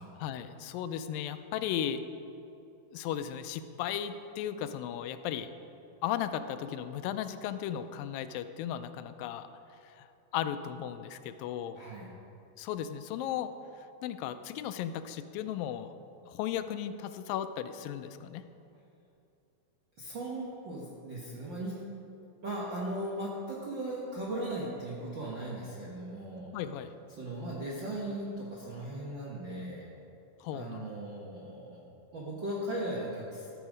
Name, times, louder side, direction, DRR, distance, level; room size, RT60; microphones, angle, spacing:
voice 1, 0.2-2.0 2.9-5.5 6.0-9.5 9.8-10.1 10.3-11.8 12.6-13.5 13.8-15.9 16.3-18.4 26.5-26.9 30.4-30.9, left 10 dB, 90° left, 11 dB, 2.3 m, -36 dB
voice 2, 11.7-12.1 20.0-21.8 22.4-26.5 27.1-29.9 30.5-31.8 32.1-33.5, right 1 dB, 65° right, -5 dB, 1.1 m, -38 dB
13.5 x 7.2 x 5.0 m, 2.7 s
omnidirectional pair, 3.9 m